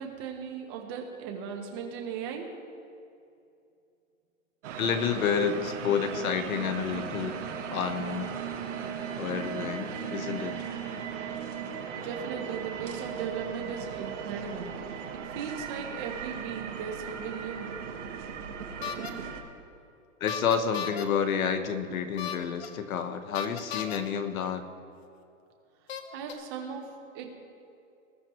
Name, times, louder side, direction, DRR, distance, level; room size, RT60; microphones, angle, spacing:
voice 1, 0.0-2.5 12.0-14.7 15.1-17.7 26.1-26.9 27.1-27.3, right 6 dB, 20° right, 3 dB, 0.8 m, -37 dB
sound 1, 4.6-19.4, right 7 dB, 60° right, 1.6 m, -37 dB
voice 2, 4.8-7.4 7.7-8.3 9.2-10.6 20.2-24.6, left 7 dB, 90° left, 8 dB, 1.2 m, -29 dB
sound 2, 18.8-19.1 20.3-21.0 22.2-22.7 23.3-24.0 25.0-25.1 25.9-26.3, left 8 dB, 50° left, 0.9 m, -35 dB
20.0 x 11.0 x 3.0 m, 2.6 s
hypercardioid pair, 175°, 40 cm